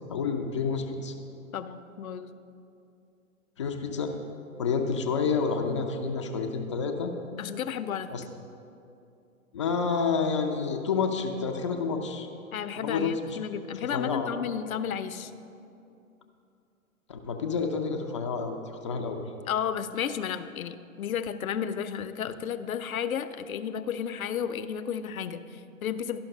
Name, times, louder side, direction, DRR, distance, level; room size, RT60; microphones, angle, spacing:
voice 1, 0.1-1.1 3.6-4.1 4.6-7.1 8.1-8.2 9.5-12.3 12.8-13.4 13.9-14.3 17.1-19.2, left 5 dB, 25° left, 3 dB, 0.3 m, -29 dB
voice 2, 1.5-2.3 7.4-8.2 12.5-15.3 19.5-26.2, left 8 dB, 80° left, 11 dB, 0.6 m, -32 dB
12.0 x 5.6 x 5.2 m, 2.7 s
hypercardioid pair, 125°, 42 cm